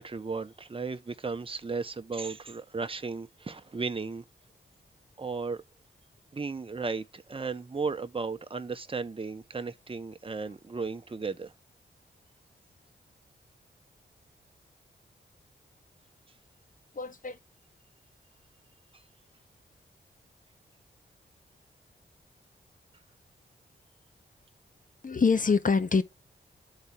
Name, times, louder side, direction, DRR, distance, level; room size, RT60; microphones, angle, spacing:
voice 1, 0.0-4.2 5.2-5.6 6.3-11.5 18.9-19.0, right 4 dB, 30° right, 0.8 m, -35 dB
voice 2, 16.9-17.4 25.0-26.0, left 5 dB, 45° left, 1.0 m, -25 dB
12.5 x 4.2 x 2.3 m
cardioid pair, 45°, 20 cm